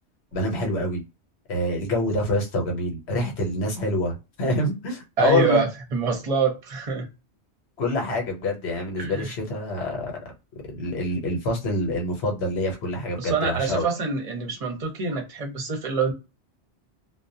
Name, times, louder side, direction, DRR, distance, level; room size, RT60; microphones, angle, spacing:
voice 1, 0.3-1.0 1.5-5.6 7.8-10.2 10.6-13.8, left 1 dB, 70° left, 1.1 m, -26 dB
voice 2, 5.2-7.1 9.0-9.3 13.2-16.1, right 5 dB, 40° right, 0.7 m, -25 dB
2.3 x 2.1 x 2.6 m
omnidirectional pair, 1.2 m